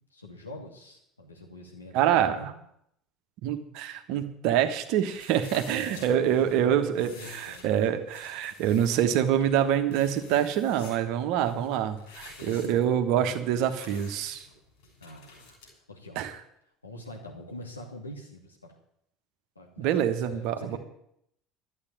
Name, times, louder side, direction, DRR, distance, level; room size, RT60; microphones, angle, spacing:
voice 1, 0.1-2.5 5.6-7.7 7.9-8.0 12.4-13.5 15.0-15.6 15.9-16.3 16.8-18.7 19.6-19.9 20.3-20.8, left 1 dB, 85° left, 0 dB, 2.5 m, -44 dB
voice 2, 1.9-2.5 3.4-14.4 16.2-16.3 19.8-20.8, right 10 dB, 55° right, 8 dB, 1.3 m, -26 dB
sound 1, 5.1-15.7, left 3 dB, 60° left, 5.9 m, -50 dB
12.0 x 8.4 x 9.0 m, 0.74 s
figure-of-eight pair, 65°, 0 cm